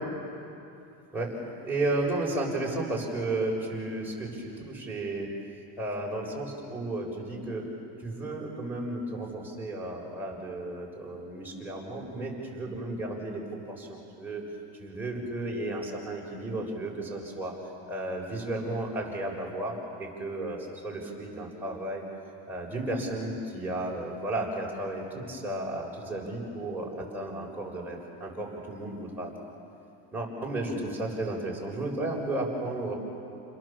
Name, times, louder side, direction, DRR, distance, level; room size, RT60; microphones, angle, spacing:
voice 1, 1.6-5.3 5.8-7.7 8.0-14.4 14.8-17.5 17.9-20.6 20.8-22.0 22.5-29.5 30.1-32.9, right 2 dB, 5° right, -4 dB, 7.0 m, -33 dB
30.0 x 22.0 x 7.6 m, 2.8 s
supercardioid pair, 120°, 49 cm